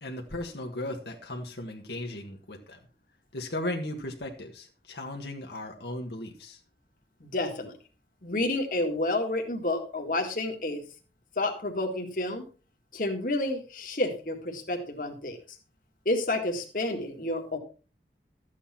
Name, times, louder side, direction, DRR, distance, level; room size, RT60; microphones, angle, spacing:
voice 1, 0.0-2.8 3.3-6.6, left 1 dB, 70° left, 2 dB, 1.7 m, -36 dB
voice 2, 7.2-7.7 8.2-10.8 11.4-12.5 12.9-15.4 16.1-17.6, left 2 dB, 50° left, 3 dB, 2.0 m, -30 dB
13.0 x 8.4 x 4.3 m, 0.36 s
head